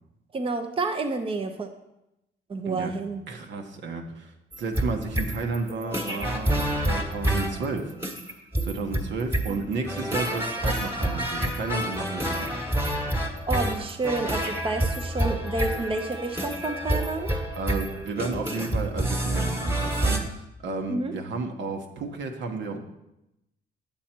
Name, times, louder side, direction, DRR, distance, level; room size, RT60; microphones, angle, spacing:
voice 1, 0.3-1.7 2.5-3.2 13.5-17.3 20.9-21.1, right 3 dB, 25° right, 5 dB, 0.7 m, -29 dB
voice 2, 3.3-4.3 4.6-7.9 8.3-12.5 17.6-22.8, right 4 dB, 65° right, 3 dB, 1.2 m, -32 dB
sound 1, 4.5-20.2, right 1 dB, 10° right, 1.4 m, -28 dB
8.7 x 7.2 x 4.4 m, 0.89 s
cardioid pair, 90°, 20 cm